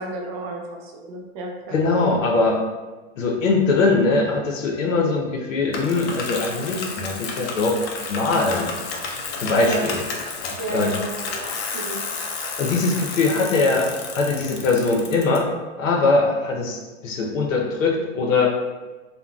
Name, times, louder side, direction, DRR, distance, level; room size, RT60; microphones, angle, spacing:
voice 1, 0.0-2.2 9.6-9.9 10.6-12.0, right 2 dB, 35° right, 1 dB, 0.4 m, -32 dB
voice 2, 1.7-2.6 3.2-7.8 8.1-8.8 9.4-10.0 10.7-10.9 12.6-15.5 15.8-18.5, left 3 dB, 90° left, 1 dB, 0.8 m, -21 dB
Bicycle, 5.7-15.4, left 4 dB, 55° left, 0.6 m, -31 dB
3.6 x 2.2 x 2.3 m, 1.2 s
hypercardioid pair, 135°, 38 cm